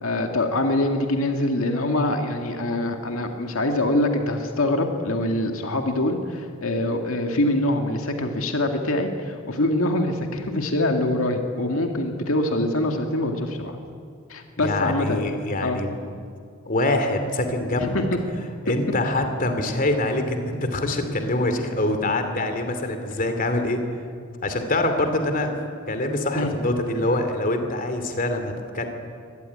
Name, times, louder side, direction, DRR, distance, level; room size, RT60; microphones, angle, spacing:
voice 1, 0.0-13.8 14.3-15.2 15.6-15.8 17.8-18.1 18.7-18.8 26.3-26.5, left 1 dB, 80° left, 4 dB, 2.1 m, -24 dB
voice 2, 14.6-15.9 16.7-17.9 18.7-23.8 24.4-25.5 25.9-28.9, left 2 dB, 45° left, 6 dB, 2.8 m, -24 dB
24.5 x 18.0 x 9.9 m, 2.3 s
head